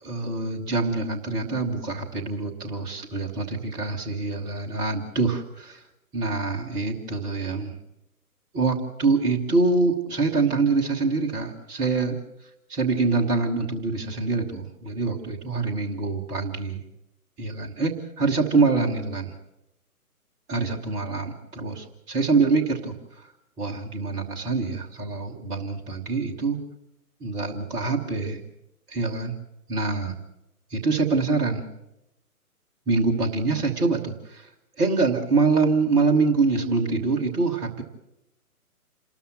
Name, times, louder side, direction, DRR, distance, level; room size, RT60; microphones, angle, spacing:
voice 1, 0.0-5.8 6.1-7.7 8.5-12.2 12.7-16.8 17.4-19.3 20.5-22.9 23.6-26.6 27.2-28.4 28.9-29.3 29.7-30.1 30.7-31.6 32.9-34.5 34.8-37.8, right 3 dB, 10° right, -1 dB, 1.2 m, -25 dB
28.0 x 13.0 x 7.8 m, 0.87 s
figure-of-eight pair, 135°, 45 cm